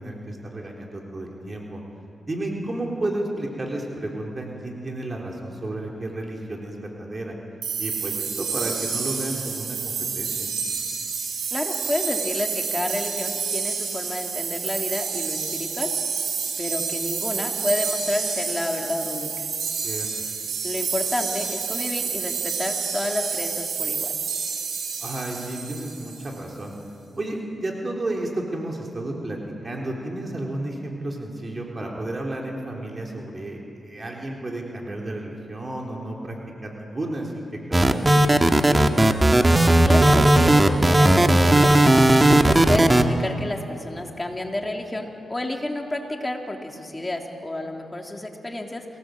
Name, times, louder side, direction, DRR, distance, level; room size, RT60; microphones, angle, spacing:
voice 1, 0.0-1.8 2.3-7.4 7.8-10.5 19.8-20.1 25.0-26.7 27.2-29.4 29.6-36.4 36.6-38.8, right 1 dB, 35° right, -1 dB, 3.8 m, -32 dB
sound 1, 7.6-26.3, right 6 dB, 85° right, 7.2 m, -29 dB
voice 2, 11.5-15.9 16.6-19.5 20.6-24.1 39.8-42.1 42.4-48.8, left 1 dB, 20° left, 2 dB, 3.3 m, -30 dB
sound 2, 37.7-43.0, right 1 dB, 20° right, 1.6 m, -16 dB
27.5 x 18.5 x 7.9 m, 2.8 s
cardioid pair, 65°, 0 cm